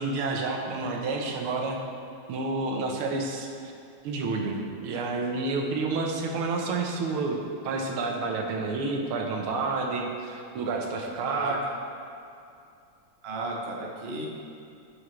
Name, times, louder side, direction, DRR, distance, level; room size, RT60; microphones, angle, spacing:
voice 1, 0.0-1.8 2.3-3.7 4.0-11.6, right 3 dB, 85° right, 2 dB, 1.8 m, -29 dB
voice 2, 11.2-11.8 13.2-14.3, right 2 dB, 45° right, -1 dB, 0.8 m, -34 dB
11.0 x 6.4 x 3.1 m, 2.6 s
omnidirectional pair, 2.3 m